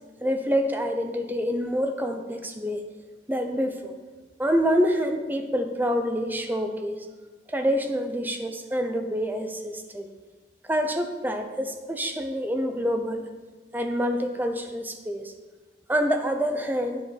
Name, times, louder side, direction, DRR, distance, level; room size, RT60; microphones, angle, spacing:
voice 1, 0.2-2.8 3.3-3.9 4.4-7.1 7.5-10.1 10.7-13.3 13.7-15.3 15.9-17.0, equal, 10° right, 5 dB, 0.6 m, -27 dB
9.2 x 7.7 x 4.1 m, 1.3 s
head